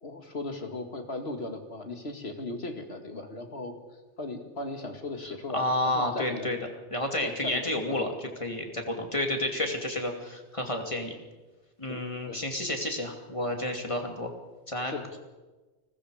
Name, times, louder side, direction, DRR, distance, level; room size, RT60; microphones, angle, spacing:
voice 1, 0.0-3.7 4.2-6.5 7.2-8.1 11.8-12.5 14.8-15.1, left 2 dB, 65° left, 5 dB, 2.4 m, -37 dB
voice 2, 5.2-6.6 6.9-11.2 11.8-14.3 14.7-14.9, left 1 dB, 30° left, 3 dB, 2.7 m, -30 dB
29.5 x 20.0 x 5.0 m, 1.2 s
omnidirectional pair, 1.1 m